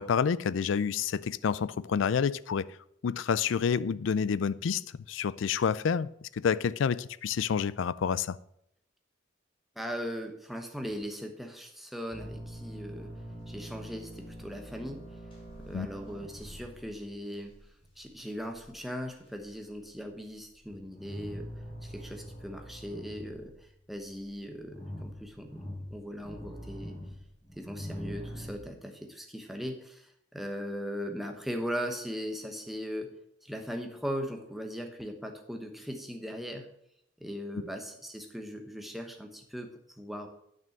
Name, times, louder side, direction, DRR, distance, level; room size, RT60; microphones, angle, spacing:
voice 1, 0.0-2.7 3.0-8.4 15.7-15.9, left 6 dB, 80° left, 0.4 m, -29 dB
voice 2, 9.8-13.1 13.5-15.0 15.6-17.5 18.0-21.5 21.8-23.5 23.9-27.0 27.5-33.1 33.4-36.7 37.2-40.3, equal, ahead, 1.1 m, -39 dB
sound 1, 12.1-18.8 19.1-20.1 20.4-23.6 23.9-28.5, equal, 25° left, 2.8 m, -44 dB
9.2 x 6.2 x 5.9 m
head